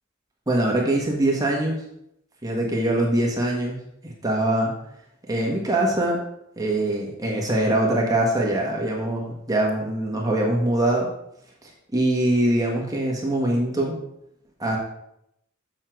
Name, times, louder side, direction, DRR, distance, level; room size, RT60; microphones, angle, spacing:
voice 1, 0.5-1.8 2.4-3.8 4.0-4.7 5.3-6.2 6.6-11.1 11.9-14.0 14.6-14.8, right 1 dB, 20° right, -1 dB, 1.5 m, -23 dB
8.4 x 6.5 x 4.6 m, 0.78 s
head